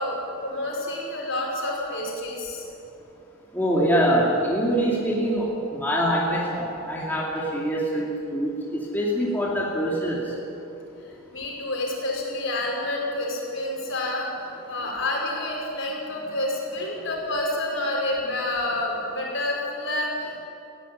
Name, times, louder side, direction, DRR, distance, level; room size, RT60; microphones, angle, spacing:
voice 1, 0.0-2.6 11.3-20.5, left 1 dB, 60° left, -2 dB, 5.6 m, -29 dB
voice 2, 3.5-10.2, equal, 10° left, -5 dB, 2.6 m, -24 dB
19.0 x 16.5 x 9.1 m, 2.8 s
head